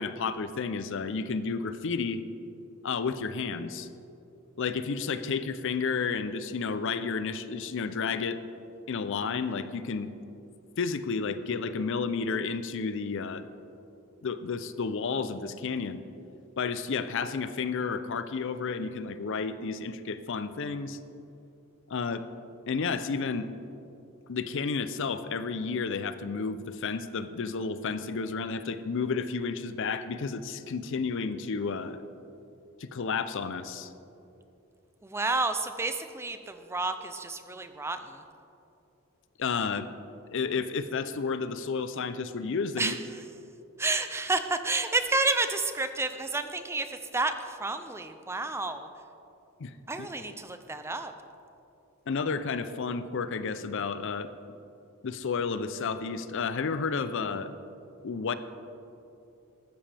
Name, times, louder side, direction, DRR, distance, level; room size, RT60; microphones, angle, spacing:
voice 1, 0.0-2.2 2.8-3.9 4.6-8.4 8.9-10.1 10.8-13.5 14.2-16.0 16.6-21.0 21.9-22.3 22.7-23.5 24.3-32.0 32.8-33.9 39.4-39.9 40.3-42.9 49.6-50.1 52.1-54.3 55.0-57.5 58.0-58.3, left 5 dB, 60° left, 13 dB, 0.5 m, -31 dB
voice 2, 35.0-38.2 42.8-43.0 43.8-48.9 49.9-51.1, right 3 dB, 10° right, 9 dB, 0.5 m, -30 dB
14.0 x 13.0 x 3.4 m, 2.8 s
head